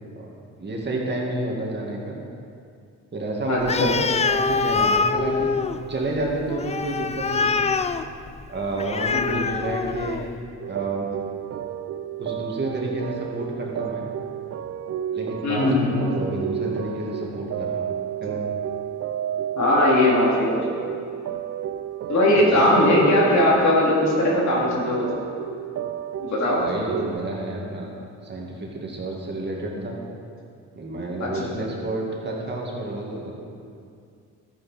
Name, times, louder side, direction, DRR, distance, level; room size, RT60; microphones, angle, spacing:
voice 1, 0.6-2.2 3.1-3.8 4.3-5.5 5.9-7.7 8.5-10.2 10.6-11.1 12.2-14.1 15.1-17.9 18.2-18.4 22.3-22.7 26.6-27.9 28.2-29.9 30.7-33.3, right 2 dB, 35° right, -2 dB, 2.3 m, -30 dB
voice 2, 3.4-3.9 9.1-9.3 15.4-15.9 19.6-20.7 22.1-25.1 26.2-26.6 31.2-31.3 31.6-31.7, left 1 dB, 65° left, -4 dB, 3.3 m, -19 dB
Animal, 3.6-10.4, left 4 dB, 20° left, 0.4 m, -25 dB
sound 1, 10.6-27.1, right 10 dB, 55° right, 0.5 m, -31 dB
13.0 x 9.1 x 4.4 m, 2.4 s
cardioid pair, 90°, 30 cm